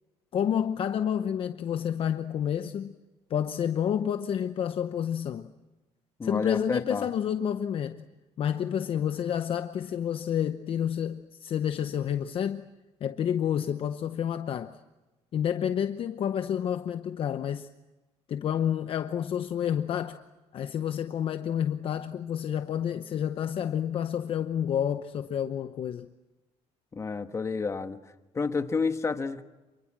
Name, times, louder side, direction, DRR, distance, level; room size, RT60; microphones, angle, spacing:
voice 1, 0.3-3.0 3.3-5.5 6.2-8.1 8.4-12.7 13.0-14.8 15.3-17.7 18.3-20.2 20.5-26.1, left 9 dB, 50° left, 0.9 m, -29 dB
voice 2, 6.2-7.1 26.9-28.0 28.3-29.4, left 4 dB, 25° left, 1.3 m, -30 dB
28.0 x 23.0 x 7.5 m
cardioid pair, 135°, 12 cm